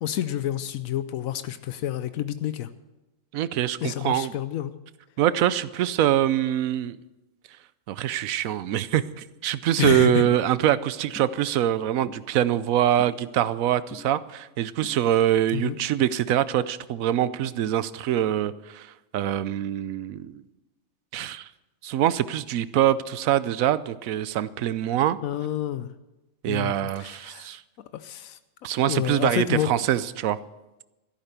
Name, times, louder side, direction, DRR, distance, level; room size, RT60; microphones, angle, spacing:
voice 1, 0.0-2.7 3.8-4.7 9.8-10.2 15.5-15.7 25.2-25.9 26.5-27.5 27.8-28.4 28.9-29.7, left 12 dB, 85° left, 12 dB, 1.1 m, -29 dB
voice 2, 3.3-4.3 5.2-7.0 7.9-18.9 19.1-20.4 21.1-21.5 21.8-25.2 26.4-27.6 28.6-30.4, right 11 dB, 85° right, 16 dB, 1.1 m, -24 dB
sound 1, 10.2-10.4 11.1-11.3 12.1-12.2 13.0-13.1 13.9-14.0 14.8-15.0, left 2 dB, 10° left, 0.7 m, -42 dB
13.5 x 11.5 x 6.8 m, 1.0 s
omnidirectional pair, 1.4 m